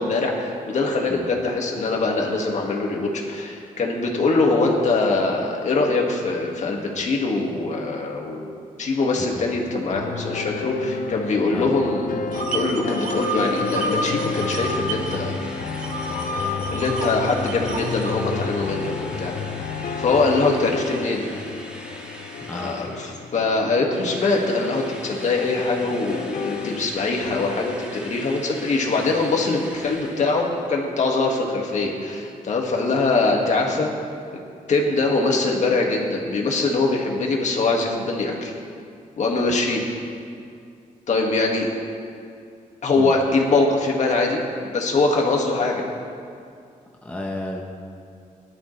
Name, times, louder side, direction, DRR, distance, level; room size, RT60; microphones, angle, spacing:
voice 1, 0.0-8.5 8.8-15.4 16.3-19.3 20.0-21.3 22.5-33.9 34.7-38.5 39.2-39.8 41.1-41.7 42.8-45.8, left 3 dB, 55° left, 0 dB, 2.0 m, -23 dB
voice 2, 9.1-9.6 11.5-11.7 20.6-20.7 22.4-22.8 43.0-43.1 47.0-47.6, left 1 dB, 10° left, 0 dB, 1.0 m, -33 dB
sound 1, 9.9-26.9, left 5 dB, 70° left, 0.7 m, -31 dB
sound 2, 12.3-15.2 15.4-18.1, right 2 dB, 70° right, 1.6 m, -29 dB
Drill, 13.2-23.5 23.9-30.8, equal, 5° right, 1.9 m, -42 dB
19.0 x 12.0 x 3.3 m, 2.4 s
wide cardioid pair, 135°, 14 cm